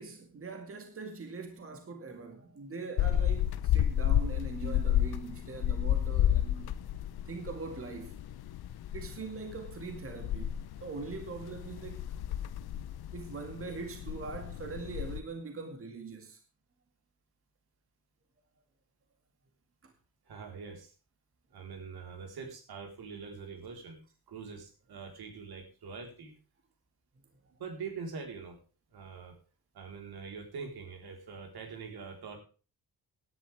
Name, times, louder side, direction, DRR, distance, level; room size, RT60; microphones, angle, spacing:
voice 1, 0.0-6.7 7.3-8.2 8.9-12.1 13.1-16.4 19.8-19.9 29.1-29.3, right 4 dB, 35° right, 2.2 m, -42 dB
sound 1, 3.0-15.2, left 11 dB, 75° left, 0.8 m, -31 dB
voice 2, 20.2-20.9 21.5-24.0 24.3-26.3 27.5-28.6 28.9-29.3 29.7-32.4, right 5 dB, 75° right, 4.2 m, -44 dB
17.5 x 11.0 x 3.5 m
wide cardioid pair, 150°, 38 cm